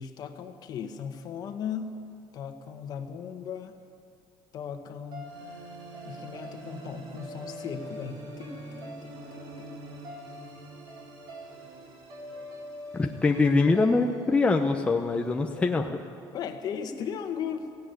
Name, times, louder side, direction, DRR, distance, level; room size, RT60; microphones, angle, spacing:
voice 1, 0.0-2.0 2.3-3.8 4.5-5.3 6.0-9.9 15.5-15.7 16.3-17.7, left 7 dB, 50° left, 7 dB, 1.5 m, -37 dB
sound 1, 5.1-15.4, right 1 dB, 55° right, 4.2 m, -43 dB
voice 2, 12.9-16.0, left 3 dB, 15° left, 3 dB, 0.8 m, -24 dB
16.5 x 16.5 x 9.5 m, 2.4 s
cardioid pair, 155°, 9 cm